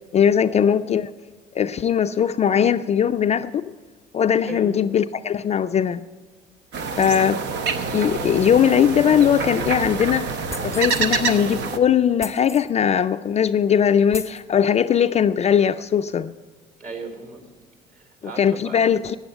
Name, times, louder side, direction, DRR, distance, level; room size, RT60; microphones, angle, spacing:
voice 1, 0.1-1.1 1.5-3.5 4.1-6.0 7.0-7.4 7.9-16.3 18.4-19.2, left 8 dB, 35° left, 11 dB, 0.4 m, -20 dB
sound 1, 6.7-11.8, right 5 dB, 65° right, 0.9 m, -26 dB
sound 2, 10.5-11.1 12.2-12.7 13.5-13.6 14.1-14.4, left 3 dB, 15° left, 0.7 m, -36 dB
voice 2, 16.8-17.5 17.9-18.9, right 3 dB, 45° right, 3 dB, 3.8 m, -36 dB
9.3 x 7.8 x 8.9 m, 1.4 s
supercardioid pair, 70°, 19 cm